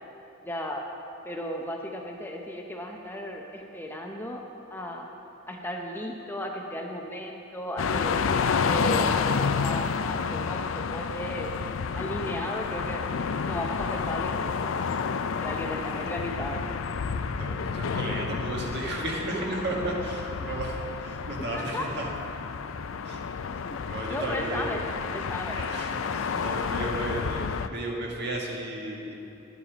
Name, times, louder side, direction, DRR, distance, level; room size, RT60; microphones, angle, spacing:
voice 1, 0.4-0.9 1.2-4.4 4.7-5.1 5.5-11.5 12.0-13.0 13.5-16.6 21.5-21.8 23.7-23.8 24.1-24.8 25.1-25.6, left 1 dB, 10° left, 1 dB, 0.7 m, -35 dB
sound 1, 7.8-27.7, left 5 dB, 80° left, 0.5 m, -30 dB
voice 2, 17.4-22.1 23.0-23.2 23.9-24.8 25.5-29.2, right 1 dB, 55° right, -1 dB, 1.8 m, -34 dB
11.5 x 9.9 x 5.0 m, 3.0 s
head